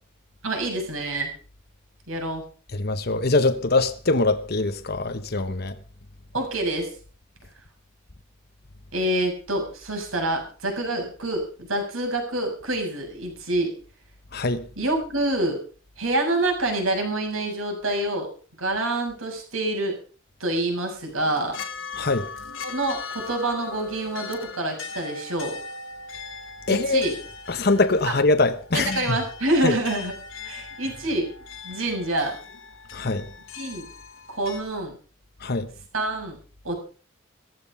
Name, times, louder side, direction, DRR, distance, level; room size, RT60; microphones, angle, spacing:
voice 1, 0.4-1.3 2.1-2.4 6.3-6.9 8.9-13.7 14.8-15.6 16.0-18.3 18.6-20.0 20.4-21.6 22.6-25.6 26.7-27.1 28.0-28.1 28.7-30.1 30.4-31.3 31.6-32.4 33.5-33.9 34.3-34.9 35.9-36.4 36.6-36.8, right 1 dB, 85° right, 7.1 m, -26 dB
voice 2, 2.7-5.8 14.3-14.7 22.0-22.3 26.7-27.1 27.5-29.2 29.6-29.8 32.9-33.3 35.4-35.7, left 3 dB, 50° left, 1.0 m, -23 dB
sound 1, 21.0-34.6, left 5 dB, 75° left, 2.0 m, -39 dB
15.5 x 14.5 x 5.5 m
head